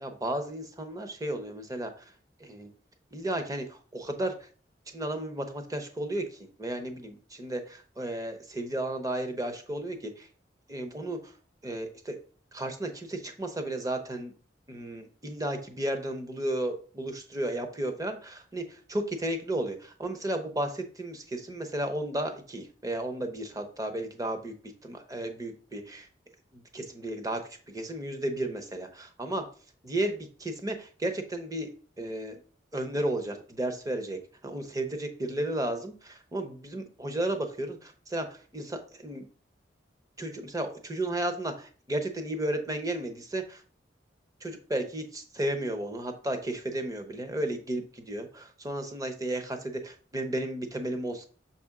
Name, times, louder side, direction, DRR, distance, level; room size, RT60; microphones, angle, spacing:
voice 1, 0.0-2.1 2.4-2.7 3.1-4.5 4.9-10.3 10.7-11.3 11.6-12.2 12.5-14.3 14.7-24.5 24.8-26.1 26.5-29.4 29.8-32.4 32.7-39.2 40.2-43.6 44.4-51.3, right 1 dB, 20° right, 6 dB, 0.8 m, -33 dB
6.4 x 4.2 x 3.6 m, 0.40 s
head